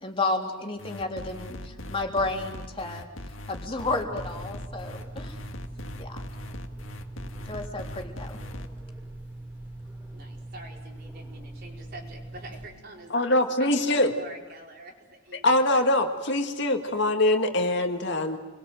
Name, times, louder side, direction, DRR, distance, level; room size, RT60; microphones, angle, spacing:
voice 1, 0.0-3.1 3.5-5.4 5.9-6.2 7.5-8.4, left 2 dB, 25° left, 1 dB, 3.5 m, -31 dB
sound 1, 0.8-8.7, left 1 dB, 80° left, 1.9 m, -40 dB
sound 2, 4.1-12.7, right 1 dB, 10° right, 5.0 m, -42 dB
voice 2, 10.1-15.6, right 2 dB, 50° right, 0 dB, 4.9 m, -46 dB
voice 3, 13.1-14.1 15.4-18.4, left 1 dB, 60° left, 5 dB, 2.1 m, -23 dB
29.0 x 22.5 x 7.9 m, 1.2 s
head